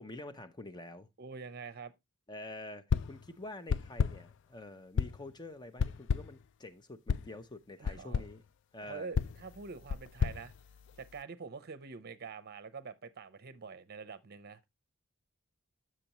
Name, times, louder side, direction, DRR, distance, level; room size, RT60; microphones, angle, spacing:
voice 1, 0.0-1.1 2.3-8.4 8.7-9.1, left 2 dB, 20° left, 0.6 m, -47 dB
voice 2, 1.2-1.9 7.8-8.2 8.8-10.5 11.0-14.7, right 5 dB, 50° right, 0.7 m, -46 dB
sound 1, 2.9-3.3 3.7-4.3 5.0-5.3 5.8-6.4 7.1-7.3 7.8-8.4 9.1-11.2, left 6 dB, 55° left, 0.3 m, -33 dB
7.6 x 6.7 x 2.9 m
head